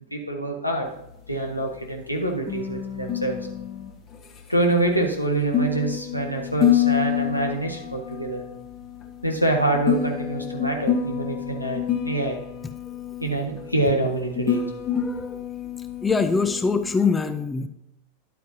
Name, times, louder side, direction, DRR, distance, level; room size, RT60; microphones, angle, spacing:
voice 1, 0.1-0.9 1.3-3.4 4.5-8.4 9.2-12.4 13.2-14.6, right 2 dB, 90° left, 2 dB, 1.4 m, -25 dB
sound 1, 0.9-17.0, left 9 dB, 30° left, 1.3 m, -28 dB
voice 2, 14.9-15.4 16.0-17.7, left 4 dB, 15° left, 10 dB, 0.5 m, -23 dB
11.0 x 8.4 x 2.7 m, 0.83 s
figure-of-eight pair, 90°, 0 cm